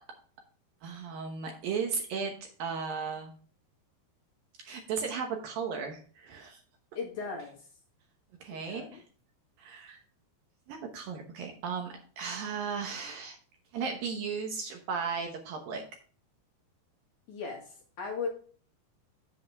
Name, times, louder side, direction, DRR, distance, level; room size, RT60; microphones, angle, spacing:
voice 1, 0.8-2.3 2.6-3.3 4.6-6.6 8.4-9.0 9.6-10.0 10.7-13.4 13.7-15.8, right 5 dB, 70° right, 3 dB, 2.4 m, -35 dB
voice 2, 7.0-7.6 8.5-9.0 17.3-18.3, left 5 dB, 55° left, -1 dB, 2.5 m, -37 dB
8.3 x 7.7 x 3.4 m, 0.43 s
omnidirectional pair, 4.9 m